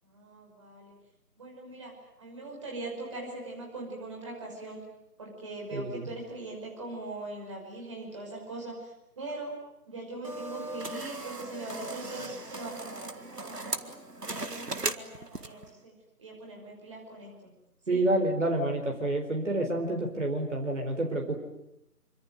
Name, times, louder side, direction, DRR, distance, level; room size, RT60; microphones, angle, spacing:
voice 1, 0.0-0.9 1.4-1.9 2.2-4.8 5.2-9.5 9.9-15.9 16.2-17.5 17.9-18.0, right 2 dB, 20° right, -1 dB, 5.6 m, -41 dB
voice 2, 5.7-6.0 17.9-21.3, right 1 dB, 50° right, 2 dB, 4.3 m, -28 dB
sound 1, 10.2-15.7, right 2 dB, 75° right, 2.0 m, -38 dB
25.5 x 25.0 x 9.2 m, 0.81 s
figure-of-eight pair, 165°, 47 cm